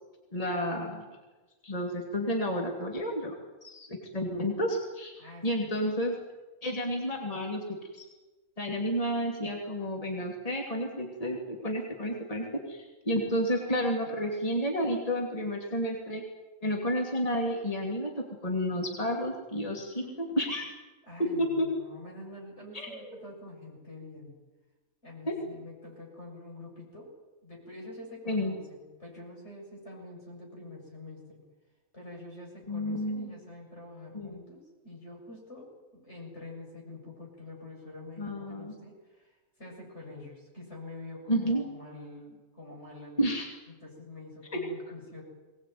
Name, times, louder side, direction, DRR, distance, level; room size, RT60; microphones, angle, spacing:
voice 1, 0.3-1.0 1.6-3.3 3.6-6.2 6.6-7.6 7.9-8.1 8.6-16.2 16.6-20.0 20.4-20.7 21.4-21.7 22.7-23.1 25.3-25.4 28.3-28.6 32.7-33.3 34.1-34.4 38.2-38.8 41.3-41.6 43.2-43.5, equal, 25° left, 0 dB, 2.9 m, -31 dB
voice 2, 5.2-5.7 14.0-14.2 20.0-20.5 21.0-24.3 25.0-27.1 27.4-31.4 31.9-43.2 43.7-45.2, left 2 dB, 50° left, -1 dB, 7.8 m, -46 dB
22.5 x 19.0 x 9.4 m, 1.2 s
omnidirectional pair, 1.5 m